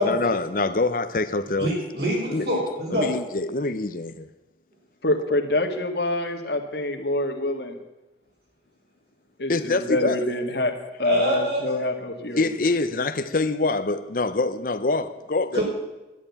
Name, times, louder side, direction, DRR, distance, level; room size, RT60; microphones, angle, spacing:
voice 1, 0.0-1.7 2.3-2.5 2.9-4.3 9.5-10.2 12.4-15.6, left 3 dB, 50° left, 0.7 m, -25 dB
voice 2, 1.6-3.2 11.0-11.6 15.5-15.6, equal, 65° right, 5.8 m, -25 dB
voice 3, 5.0-7.8 9.4-10.7 11.0-12.5, left 1 dB, 65° left, 1.9 m, -26 dB
11.5 x 11.0 x 8.5 m
head